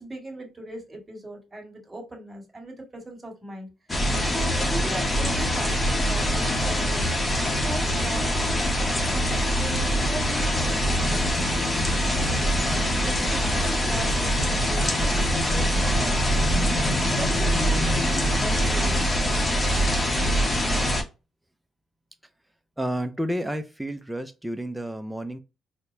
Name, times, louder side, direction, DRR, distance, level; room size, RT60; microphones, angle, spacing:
voice 1, 0.0-3.7 4.3-7.2 7.6-12.6 13.0-16.4 17.1-19.1, right 1 dB, 20° right, 1.7 m, -39 dB
sound 1, 3.9-21.0, equal, 25° left, 0.8 m, -23 dB
voice 2, 22.8-25.4, equal, 5° right, 0.4 m, -30 dB
4.1 x 2.1 x 2.6 m
cardioid pair, 90°, 0 cm